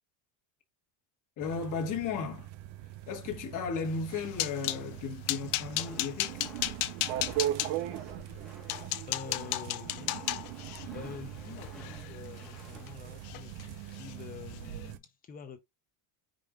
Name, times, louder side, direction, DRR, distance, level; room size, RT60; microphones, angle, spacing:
voice 1, 1.4-2.5 3.1-6.5, left 5 dB, 40° left, 1.3 m, -35 dB
sound 1, 1.4-15.0, right 13 dB, 55° right, 0.6 m, -40 dB
sound 2, 3.9-4.8 5.3-7.7 8.3-8.4 8.7-12.9 13.2-13.7 13.9-14.1 14.5-14.7, left 17 dB, 85° left, 0.7 m, -34 dB
Walk footsteps, 5.3-13.0, left 1 dB, ahead, 1.0 m, -52 dB
voice 2, 9.1-10.3 10.6-15.6, left 6 dB, 20° left, 0.5 m, -47 dB
5.2 x 2.5 x 3.5 m
cardioid pair, 155°, 50 cm